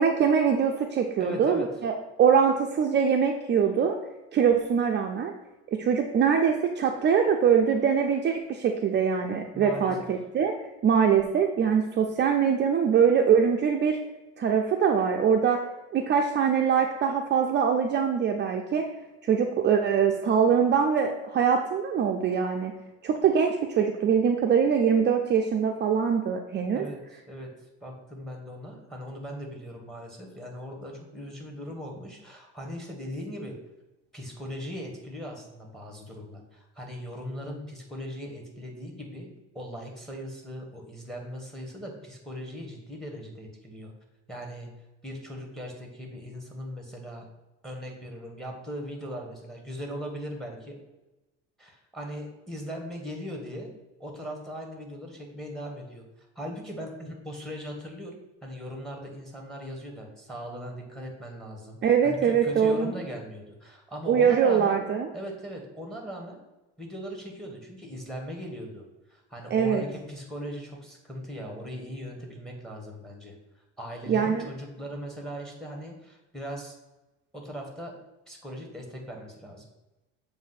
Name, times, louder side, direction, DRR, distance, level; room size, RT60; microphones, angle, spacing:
voice 1, 0.0-1.9 2.2-4.0 4.3-5.3 5.7-10.5 10.8-14.0 14.4-15.6 15.9-18.9 19.2-22.7 23.0-26.8 61.8-62.9 64.1-65.1 69.5-69.8 74.1-74.4, right 7 dB, 35° right, 2 dB, 0.5 m, -23 dB
voice 2, 1.2-1.7 9.5-10.0 26.7-27.5 27.8-33.6 34.1-39.3 39.5-43.9 44.3-44.7 45.0-47.2 47.6-50.8 51.6-53.7 54.0-58.1 58.4-64.8 65.1-66.4 66.8-68.8 69.1-73.3 73.8-76.7 77.3-77.9 78.3-79.7, equal, ahead, 1 dB, 1.7 m, -39 dB
7.1 x 2.7 x 5.8 m, 1.0 s
cardioid pair, 115°, 31 cm